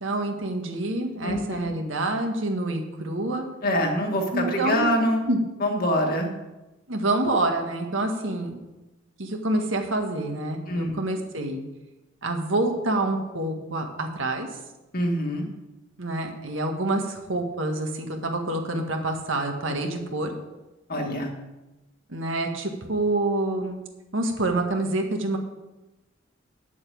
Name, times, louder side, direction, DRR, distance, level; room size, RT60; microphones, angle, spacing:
voice 1, 0.0-3.5 4.3-4.9 5.3-5.4 6.9-8.6 9.2-11.6 12.2-14.5 16.0-20.3 22.1-23.8 24.1-25.4, right 2 dB, 75° right, 3 dB, 1.7 m, -27 dB
voice 2, 1.2-1.7 3.6-5.2 5.6-6.3 10.7-11.0 14.9-15.5 20.9-21.3, equal, 50° left, 2 dB, 2.0 m, -25 dB
9.3 x 7.1 x 8.6 m, 1.0 s
head